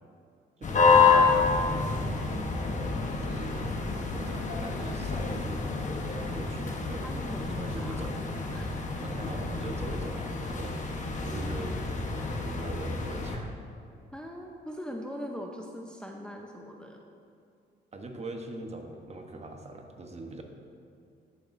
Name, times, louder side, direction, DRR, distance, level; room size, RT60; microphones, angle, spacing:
sound 1, 0.6-13.4, left 4 dB, 40° left, 1.1 m, -28 dB
voice 1, 0.6-1.9 3.2-5.7 6.0-7.1 7.5-8.2 9.0-11.8 12.3-13.5 17.9-20.4, right 2 dB, 35° right, 4 dB, 1.0 m, -42 dB
voice 2, 7.0-8.1 8.5-8.8 14.1-17.1, equal, 5° left, 1 dB, 0.7 m, -41 dB
14.0 x 6.9 x 2.6 m, 2.4 s
cardioid pair, 90°, 20 cm